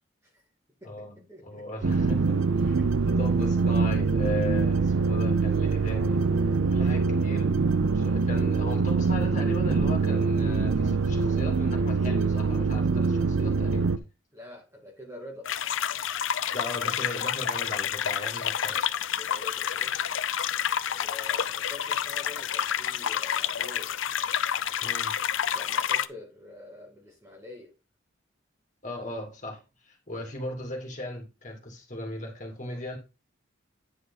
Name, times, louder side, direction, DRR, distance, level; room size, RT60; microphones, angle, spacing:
voice 1, 0.8-1.6 2.6-3.2 14.3-15.5 18.6-20.1 20.9-23.9 25.5-27.7 32.6-32.7, left 2 dB, 15° right, 2.3 m, -46 dB
voice 2, 1.4-6.3 6.7-7.5 7.9-13.9 16.5-18.8 24.8-25.2 28.8-33.0, left 1 dB, 40° left, 2.7 m, -37 dB
sound 1, 1.8-14.0, right 4 dB, 80° right, 0.6 m, -24 dB
babble brook, 15.5-26.1, left 9 dB, 70° left, 0.5 m, -29 dB
9.8 x 4.9 x 4.1 m
head